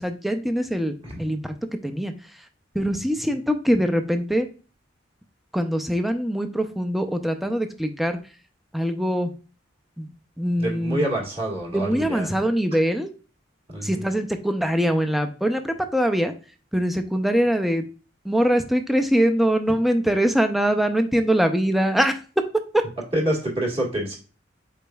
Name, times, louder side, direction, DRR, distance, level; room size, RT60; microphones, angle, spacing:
voice 1, 0.0-1.5 1.8-2.1 2.7-4.5 5.5-8.2 8.7-9.3 10.0-10.1 10.4-11.0 11.7-13.1 13.8-16.3 16.7-17.8 18.2-22.2, equal, ahead, 6 dB, 0.4 m, -23 dB
voice 2, 10.6-12.3 13.7-14.1 23.1-24.1, right 1 dB, 30° right, -2 dB, 1.6 m, -27 dB
5.0 x 4.3 x 2.2 m, 0.37 s
head